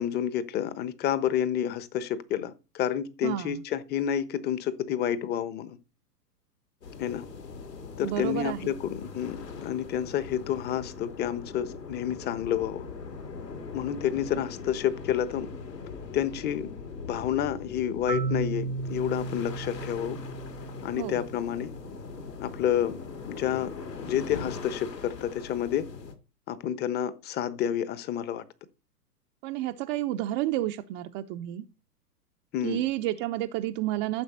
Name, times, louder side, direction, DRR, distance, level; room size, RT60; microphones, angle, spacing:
voice 1, 0.0-5.8 7.0-7.2 8.0-12.9 13.7-15.5 16.1-16.7 17.0-20.2 20.8-21.7 22.4-23.0 23.3-23.7 24.0-25.9 26.5-28.4 32.5-32.9, left 10 dB, 20° left, 1.1 m, -29 dB
voice 2, 3.2-3.5 8.0-8.7 21.0-21.3 29.4-31.6 32.6-34.2, right 14 dB, 30° right, 0.8 m, -30 dB
sound 1, 6.8-26.1, left 4 dB, 75° left, 3.5 m, -41 dB
Marimba xylophone, 18.1-22.0, right 4 dB, 85° right, 1.3 m, -35 dB
14.0 x 7.3 x 4.3 m
hypercardioid pair, 120°, 48 cm